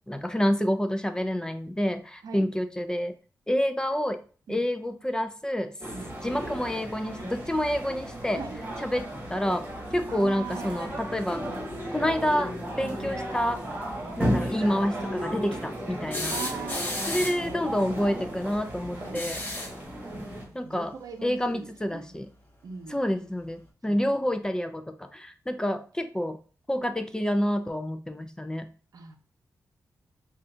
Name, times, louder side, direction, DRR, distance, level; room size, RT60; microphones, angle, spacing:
voice 1, 0.1-3.1 3.5-4.2 4.5-5.7 6.2-8.4 8.8-9.0 9.3-9.7 9.9-11.5 11.9-12.5 12.8-13.6 14.2-16.3 17.1-19.4 20.5-20.9 21.2-22.3 22.9-26.4 26.7-28.6, equal, 10° left, 8 dB, 0.4 m, -28 dB
sound 1, 5.8-20.5, equal, 25° right, 1.7 m, -35 dB
voice 2, 8.3-8.6 10.1-10.9 12.8-13.0 16.3-17.4 18.9-19.2 20.3-22.1 22.6-23.0 23.9-24.1 28.9-29.2, right 5 dB, 70° right, 5 dB, 0.7 m, -41 dB
sound 2, 16.1-17.5 19.0-19.8 21.5-21.6 23.0-23.1, left 1 dB, 30° left, 1.3 m, -33 dB
5.5 x 2.4 x 2.6 m, 0.38 s
wide cardioid pair, 100°, 6 cm